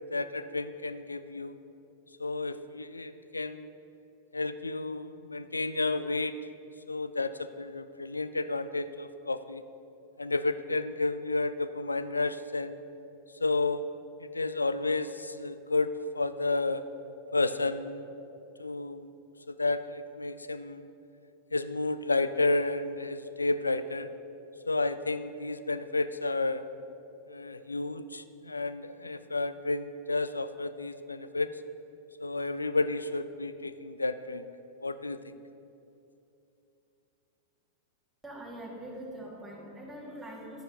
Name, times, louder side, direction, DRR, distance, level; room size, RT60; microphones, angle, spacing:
voice 1, 0.1-1.6 2.2-3.7 4.3-6.3 6.9-9.6 10.2-12.8 13.4-13.9 14.2-16.8 17.3-18.0 18.6-19.1 19.5-20.9 21.5-24.1 24.7-26.6 27.3-31.5 32.2-34.4 34.8-35.2, left 3 dB, 80° left, 13 dB, 0.3 m, -31 dB
voice 2, 38.2-40.6, right 1 dB, 10° right, -5 dB, 2.0 m, -43 dB
12.0 x 9.8 x 2.9 m, 2.8 s
figure-of-eight pair, 90°, 0 cm